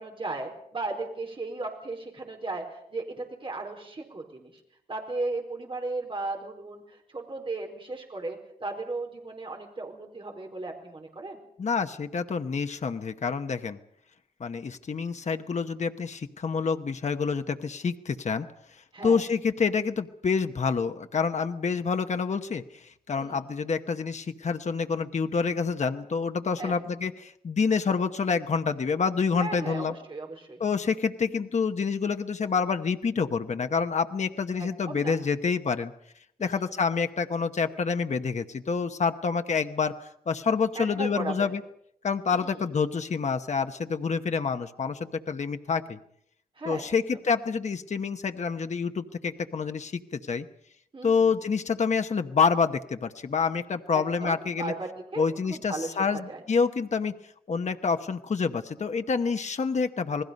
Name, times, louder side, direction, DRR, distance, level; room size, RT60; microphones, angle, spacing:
voice 1, 0.0-4.5 4.9-11.4 18.9-19.2 23.2-23.4 26.6-26.7 29.4-30.6 34.6-35.2 36.4-36.8 40.7-41.5 42.3-42.7 46.6-46.8 50.9-51.3 53.9-55.2 55.5-56.4, right 2 dB, 35° right, 2 dB, 4.5 m, -36 dB
voice 2, 11.6-13.8 14.4-18.5 19.0-29.9 30.6-35.9 36.4-39.9 40.3-41.6 42.0-46.0 46.7-50.5 51.0-54.7 55.2-57.2 57.5-60.2, left 5 dB, 50° left, 7 dB, 1.0 m, -27 dB
28.5 x 20.0 x 5.3 m, 0.70 s
wide cardioid pair, 175°, 15 cm